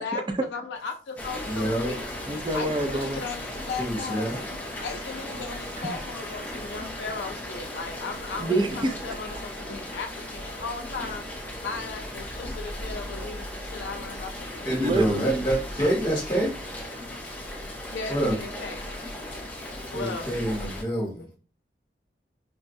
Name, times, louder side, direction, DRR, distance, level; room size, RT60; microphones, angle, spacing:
voice 1, 0.0-2.1 2.5-11.2 11.6-14.9 17.9-18.9 19.9-20.4, left 4 dB, 85° left, 0.4 m, -37 dB
Rain, 1.2-20.8, left 1 dB, 10° left, 0.7 m, -37 dB
voice 2, 1.4-1.9 3.8-4.4 14.6-16.5 18.1-18.3 19.9-21.4, right 1 dB, 25° left, 1.1 m, -27 dB
voice 3, 2.3-3.2 8.4-9.0 14.7-15.5, right 2 dB, 25° right, 0.4 m, -27 dB
4.6 x 2.2 x 2.6 m
head